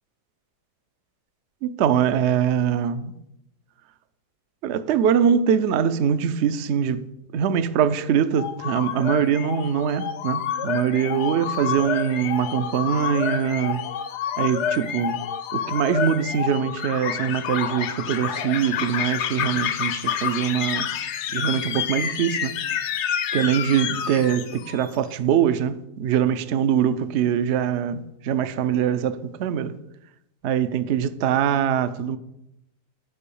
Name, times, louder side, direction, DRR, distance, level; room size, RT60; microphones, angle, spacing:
voice 1, 1.6-3.1 4.6-7.1 7.3-13.9 14.4-15.3 15.5-20.9 21.3-22.6 23.3-29.8 30.4-32.2, right 8 dB, 70° right, 0.6 m, -23 dB
sound 1, 8.3-24.9, left 8 dB, 65° left, 0.7 m, -28 dB
9.8 x 4.6 x 7.0 m
omnidirectional pair, 1.7 m